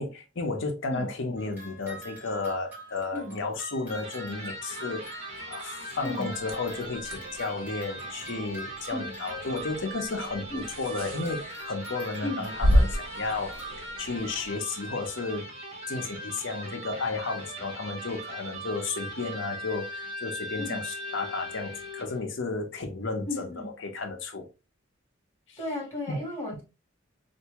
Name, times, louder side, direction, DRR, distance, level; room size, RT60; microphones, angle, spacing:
voice 1, 0.0-13.6 14.0-15.5 15.9-24.5 25.5-25.6 26.1-26.2, left 3 dB, 65° left, 0.8 m, -33 dB
sound 1, 1.4-10.2 10.6-13.7, right 2 dB, 10° right, 2.2 m, -46 dB
Electric guitar, 3.8-22.2, right 1 dB, 30° right, 1.2 m, -40 dB
sound 2, 6.3-14.6, equal, 70° right, 1.0 m, -31 dB
voice 2, 23.3-23.7 25.6-26.6, left 1 dB, 15° left, 2.0 m, -34 dB
3.5 x 2.7 x 2.9 m
head